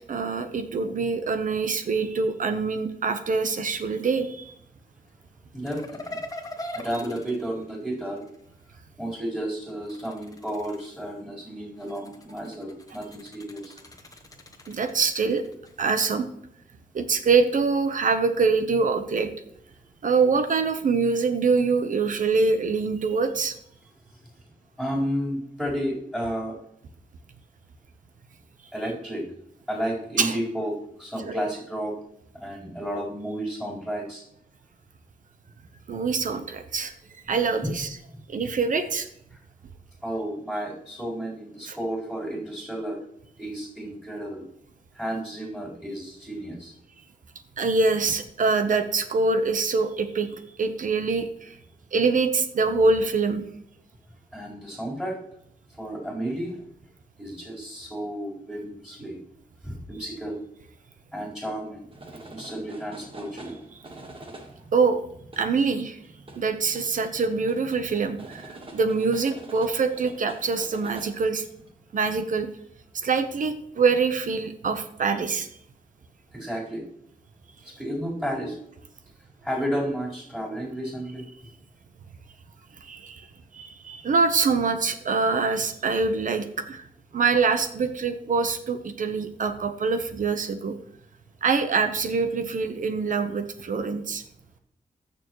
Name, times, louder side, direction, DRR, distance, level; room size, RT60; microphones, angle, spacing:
voice 1, 0.1-4.5 6.6-7.0 14.7-15.4 15.8-16.3 16.9-19.3 20.0-23.6 30.2-30.4 31.3-31.4 35.9-36.9 37.3-37.9 38.3-39.1 41.7-41.8 47.6-51.6 51.9-53.4 64.7-65.0 65.4-66.0 66.3-71.4 71.9-72.5 73.0-75.5 82.8-83.3 83.5-86.9 87.1-90.8 91.4-94.2, right 4 dB, 60° right, 8 dB, 0.9 m, -24 dB
voice 2, 5.5-6.2 6.7-8.2 9.0-13.8 24.8-26.6 28.7-29.2 29.7-32.0 32.4-34.2 39.3-39.4 40.0-43.0 43.4-44.4 44.9-46.7 54.3-55.2 55.8-56.6 57.2-59.2 59.6-60.4 61.1-61.9 62.2-63.6 76.3-76.8 77.6-78.6 79.4-81.2, equal, 5° right, -5 dB, 4.3 m, -32 dB
sound 1, 5.7-8.4 9.7-11.2 11.8-16.0, left 1 dB, 25° left, 1.1 m, -42 dB
sound 2, 61.9-71.7, right 2 dB, 35° right, 1.6 m, -46 dB
20.0 x 7.0 x 3.1 m, 0.72 s
wide cardioid pair, 150°, 15 cm